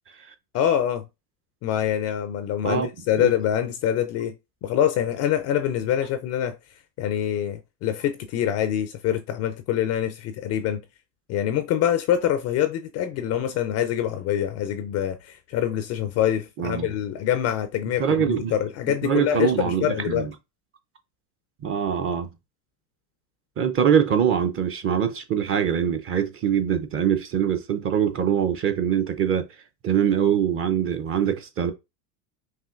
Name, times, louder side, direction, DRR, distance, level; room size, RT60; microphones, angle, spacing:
voice 1, 0.5-1.0 1.6-4.3 4.6-6.6 7.0-10.8 11.3-20.3, left 10 dB, 35° left, 0.4 m, -25 dB
voice 2, 16.6-16.9 18.0-18.5 19.0-20.3 21.6-22.3 23.6-29.5 29.8-31.7, right 8 dB, 30° right, 0.5 m, -23 dB
5.5 x 2.7 x 2.4 m
hypercardioid pair, 105°, 50 cm